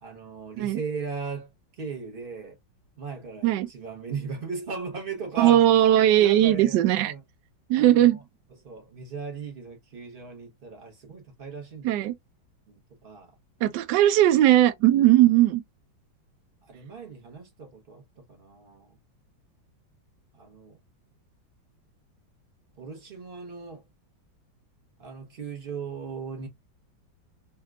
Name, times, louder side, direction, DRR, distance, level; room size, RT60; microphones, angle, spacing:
voice 1, 0.0-1.5 1.8-2.6 3.0-5.7 6.2-7.2 7.7-8.2 8.6-12.0 12.7-12.8 13.0-13.3 16.6-18.9 20.3-20.8 22.8-23.8 25.0-26.5, right 5 dB, 45° right, 0.7 m, -37 dB
voice 2, 5.4-7.1 7.7-8.2 11.8-12.1 13.6-15.6, right 13 dB, 70° right, 1.1 m, -19 dB
3.3 x 2.7 x 2.2 m
omnidirectional pair, 2.1 m